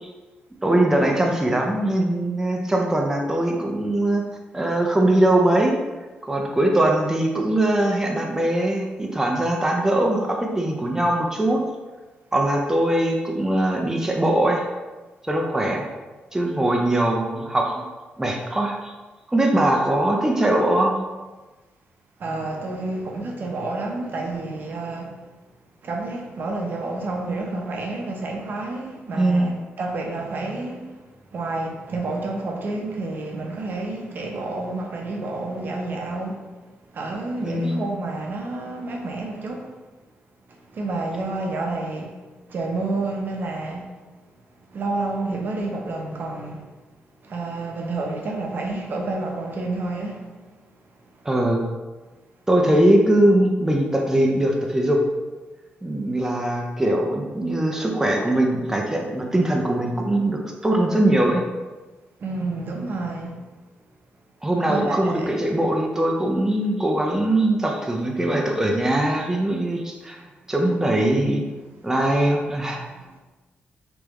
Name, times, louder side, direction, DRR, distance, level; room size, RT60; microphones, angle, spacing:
voice 1, 0.6-4.2 4.5-5.8 6.2-11.6 12.3-14.6 15.3-15.9 16.3-17.8 18.2-18.9 19.3-21.0 29.1-29.5 37.4-37.8 51.2-51.6 52.5-55.0 55.8-61.4 64.4-70.2 70.5-71.4 71.8-72.8, right 1 dB, 10° right, 0.6 m, -21 dB
voice 2, 22.2-25.2 25.8-31.0 31.3-36.5 36.9-39.7 40.5-42.2 42.5-43.9 44.7-46.7 47.2-50.3 62.2-63.4 64.7-65.3 72.7-73.2, right 2 dB, 60° right, 0.7 m, -29 dB
3.4 x 3.3 x 3.1 m
cardioid pair, 75°, 4 cm